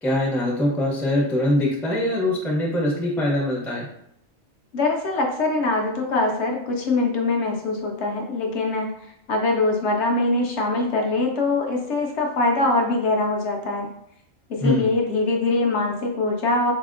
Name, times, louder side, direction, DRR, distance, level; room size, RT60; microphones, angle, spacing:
voice 1, 0.0-3.9 14.6-14.9, left 1 dB, 5° left, -3 dB, 0.3 m, -23 dB
voice 2, 4.7-8.9 9.3-13.9 14.6-16.7, left 2 dB, 65° left, 1 dB, 0.8 m, -23 dB
4.0 x 2.7 x 2.4 m, 0.74 s
omnidirectional pair, 1.4 m